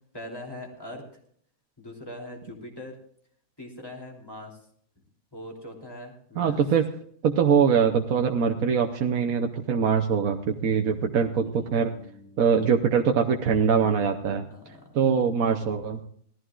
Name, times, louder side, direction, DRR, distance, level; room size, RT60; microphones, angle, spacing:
voice 1, 0.1-1.0 1.8-3.0 3.6-4.6 5.3-6.6 11.3-12.4 14.3-15.6, left 1 dB, 15° left, 0 dB, 3.1 m, -42 dB
voice 2, 6.4-6.9 7.2-11.9 12.4-14.5 14.9-16.0, right 6 dB, 80° right, 3 dB, 1.3 m, -23 dB
19.0 x 14.0 x 2.4 m, 0.62 s
omnidirectional pair, 1.4 m